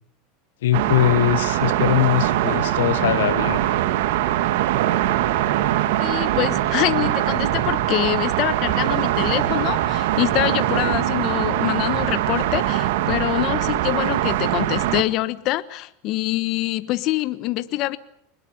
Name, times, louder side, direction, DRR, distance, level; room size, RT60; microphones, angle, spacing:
voice 1, 0.6-3.7, left 13 dB, 90° left, 1.2 m, -21 dB
sound 1, 0.7-15.0, right 13 dB, 75° right, 1.9 m, -22 dB
voice 2, 6.0-18.0, left 17 dB, 50° left, 1.3 m, -25 dB
sound 2, 10.8-12.7 13.0-13.9, right 9 dB, 55° right, 3.3 m, -39 dB
24.0 x 20.5 x 8.0 m
supercardioid pair, 125°, 0 cm